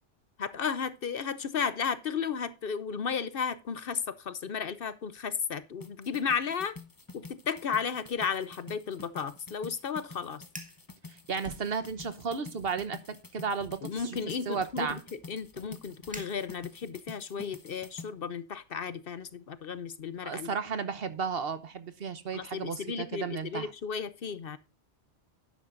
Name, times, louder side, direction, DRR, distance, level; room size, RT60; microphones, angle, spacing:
voice 1, 0.4-6.8 7.1-10.4 13.8-15.0 15.3-20.5 22.3-24.6, left 6 dB, 55° left, 0.8 m, -34 dB
sound 1, 5.8-18.1, left 3 dB, 20° left, 0.8 m, -48 dB
Fire, 10.5-10.8 11.4-12.2 12.6-12.9 13.6-16.9, right 1 dB, 5° right, 1.9 m, -50 dB
voice 2, 11.1-15.0 20.2-23.7, right 5 dB, 55° right, 1.2 m, -34 dB
11.5 x 10.0 x 2.5 m
omnidirectional pair, 1.2 m